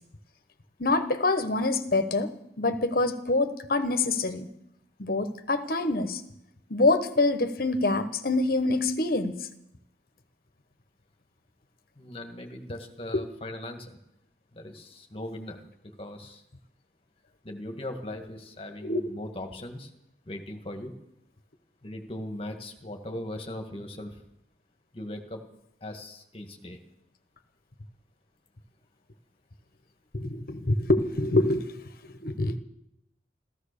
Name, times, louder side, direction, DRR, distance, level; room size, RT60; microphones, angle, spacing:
voice 1, 0.8-4.5 5.0-6.2 6.7-9.4 13.1-13.2 18.8-19.0 30.1-31.7 32.2-32.6, left 2 dB, 55° left, 9 dB, 1.3 m, -25 dB
voice 2, 12.0-14.0 14.5-16.4 17.4-19.9 20.3-20.9 21.8-24.2 24.9-25.4 25.8-26.8, left 1 dB, 35° left, 5 dB, 1.8 m, -39 dB
14.5 x 14.0 x 6.8 m, 0.81 s
head